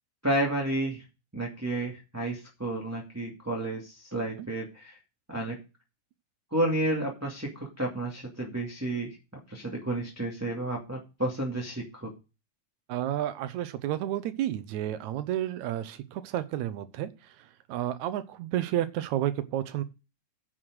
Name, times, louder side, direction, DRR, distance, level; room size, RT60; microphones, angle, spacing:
voice 1, 0.2-1.0 1.3-4.9 5.3-5.6 6.5-9.2 9.5-12.1, right 1 dB, 5° right, -3 dB, 1.5 m, -31 dB
voice 2, 12.9-17.1 17.7-19.8, right 12 dB, 75° right, 13 dB, 1.9 m, -31 dB
9.7 x 6.3 x 6.4 m, 0.29 s
omnidirectional pair, 3.7 m